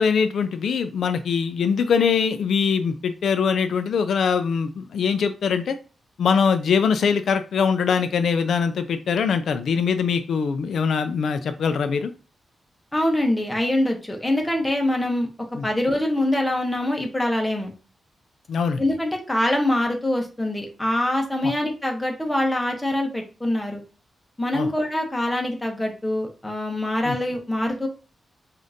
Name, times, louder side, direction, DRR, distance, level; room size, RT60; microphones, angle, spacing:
voice 1, 0.0-5.8 6.2-12.1 15.6-15.7 18.5-18.8 21.4-21.5 24.5-24.7 27.1-27.2, left 6 dB, 70° left, 9 dB, 0.3 m, -22 dB
voice 2, 12.9-15.3 15.6-17.7 18.8-23.8 24.4-27.9, left 1 dB, 10° left, 2 dB, 0.8 m, -24 dB
5.0 x 2.5 x 2.7 m, 0.34 s
wide cardioid pair, 160°, 0 cm